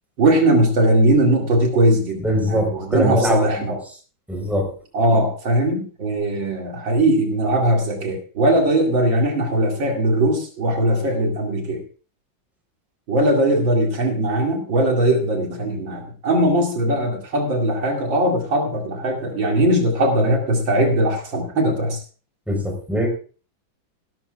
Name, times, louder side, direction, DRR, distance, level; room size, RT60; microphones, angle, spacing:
voice 1, 0.2-3.8 4.9-11.8 13.1-22.0, right 1 dB, 75° right, 1 dB, 3.1 m, -19 dB
voice 2, 2.2-3.7 4.3-4.7 22.5-23.1, equal, ahead, 2 dB, 4.0 m, -22 dB
17.0 x 12.5 x 2.4 m, 0.38 s
omnidirectional pair, 2.1 m